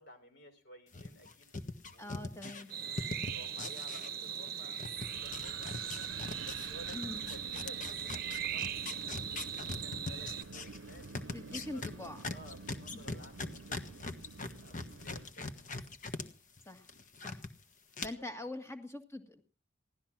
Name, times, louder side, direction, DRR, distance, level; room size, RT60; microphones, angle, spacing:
voice 1, 0.0-1.5 1.9-2.3 2.7-6.0 6.4-9.5 9.8-11.8 12.3-14.2 14.5-15.8 18.2-18.4, left 1 dB, 55° left, 7 dB, 4.1 m, -55 dB
sound 1, 0.9-4.5 4.8-16.2 16.6-17.5 17.9-18.1, left 3 dB, 40° left, 1.4 m, -41 dB
voice 2, 2.0-2.7 6.9-7.3 11.2-12.2 12.9-13.0 16.7-16.9 17.2-17.5 18.0-19.4, left 2 dB, 15° left, 8 dB, 1.8 m, -44 dB
sound 2, 2.7-10.4, right 8 dB, 45° right, 0.9 m, -40 dB
Wind, 5.0-15.2, right 4 dB, 75° right, 0.7 m, -49 dB
17.5 x 13.0 x 6.0 m, 0.39 s
head